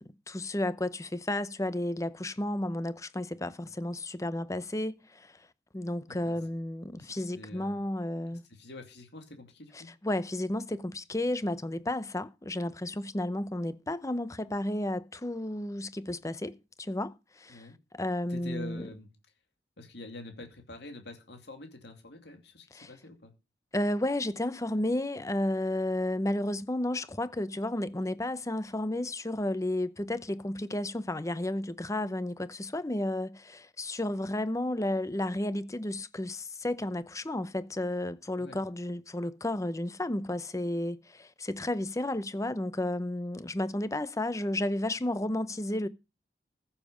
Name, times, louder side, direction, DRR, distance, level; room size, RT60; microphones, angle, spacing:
voice 1, 0.0-5.4 5.7-8.4 9.7-17.7 17.9-18.9 22.7-22.9 23.7-45.9, left 1 dB, 15° left, 0.7 m, -32 dB
voice 2, 7.3-7.8 8.3-9.9 17.5-17.8 18.3-19.1 19.8-23.3 38.4-38.6, left 2 dB, 65° left, 2.6 m, -46 dB
15.0 x 7.3 x 5.1 m
head